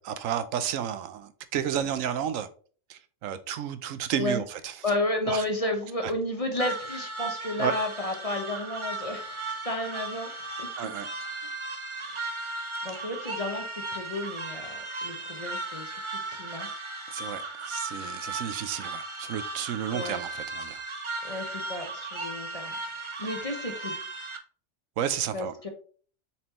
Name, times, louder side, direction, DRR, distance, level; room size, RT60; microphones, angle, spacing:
voice 1, 0.0-2.5 2.9-4.7 5.3-5.4 6.0-6.1 7.6-7.7 10.8-11.1 17.1-20.8 25.0-25.7, right 9 dB, 80° right, 1.0 m, -32 dB
voice 2, 4.8-10.9 12.0-12.3 12.8-16.7 19.9-20.2 21.2-22.8 23.2-24.0 25.3-25.7, left 1 dB, 30° left, 0.9 m, -32 dB
sound 1, 6.6-24.4, right 2 dB, 30° right, 0.6 m, -36 dB
7.2 x 4.5 x 3.0 m
omnidirectional pair, 1.4 m